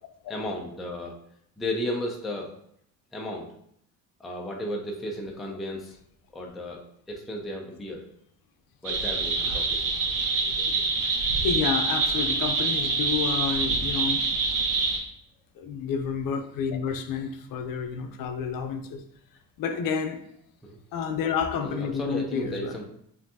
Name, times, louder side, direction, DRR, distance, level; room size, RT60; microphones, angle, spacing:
voice 1, 0.3-1.2 1.6-2.6 3.1-3.5 4.2-6.0 6.3-6.8 7.1-8.1 8.8-9.8 20.6-20.8 21.6-22.9, left 1 dB, ahead, -1 dB, 0.3 m, -34 dB
sound 1, 8.8-15.0, right 4 dB, 60° right, 0.9 m, -26 dB
voice 2, 11.4-14.7 15.6-19.0 19.6-20.2 20.9-22.9, left 6 dB, 65° left, 6 dB, 0.6 m, -30 dB
5.4 x 2.7 x 2.7 m, 0.70 s
cardioid pair, 160°, 36 cm